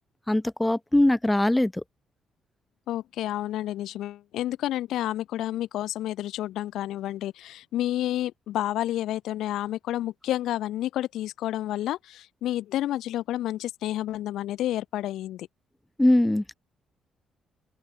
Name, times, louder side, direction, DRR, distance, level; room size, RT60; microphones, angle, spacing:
voice 1, 0.3-1.8 16.0-16.5, left 1 dB, 5° left, 5.1 m, -21 dB
voice 2, 2.9-15.5, left 13 dB, 80° left, 6.6 m, -30 dB
open air
cardioid pair, 120°, 0 cm